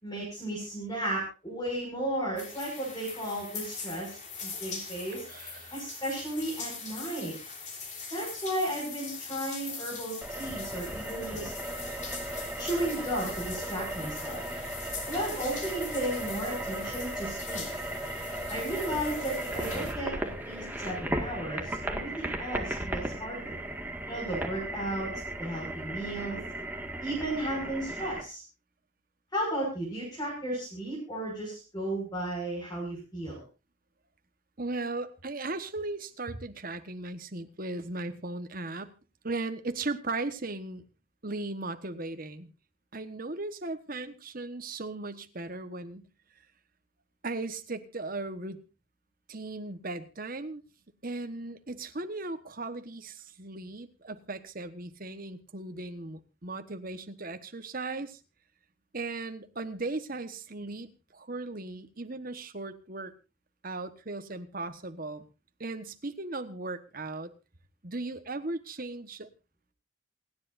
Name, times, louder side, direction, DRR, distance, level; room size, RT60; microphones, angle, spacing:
voice 1, 0.0-5.3 5.7-7.3 8.1-11.5 12.6-14.4 15.1-17.7 18.5-23.6 24.1-25.1 25.4-26.4 27.0-28.4 29.3-33.4, right 1 dB, 20° left, -5 dB, 6.5 m, -34 dB
sound 1, 2.4-19.9, left 5 dB, 35° left, 3.5 m, -42 dB
voice 2, 5.3-5.8 34.6-38.9 39.2-40.8 41.2-42.5 42.9-46.0 47.2-48.6 49.3-50.6 51.0-58.2 58.9-63.1 63.6-65.2 65.6-67.3 67.8-69.3, right 2 dB, 45° right, 9 dB, 1.3 m, -37 dB
sound 2, 10.2-28.2, right 1 dB, 10° right, 1.9 m, -36 dB
28.0 x 10.5 x 2.6 m, 0.30 s
head